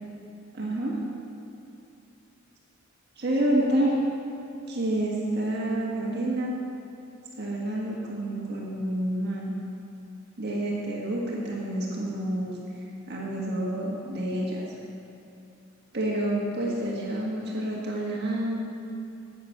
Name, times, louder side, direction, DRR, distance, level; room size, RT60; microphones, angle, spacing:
voice 1, 0.5-1.0 3.2-4.0 4.7-6.5 7.4-9.5 10.4-12.6 13.1-14.7 15.9-18.6, right 1 dB, 50° right, -3 dB, 1.5 m, -28 dB
9.8 x 8.6 x 6.0 m, 2.6 s
head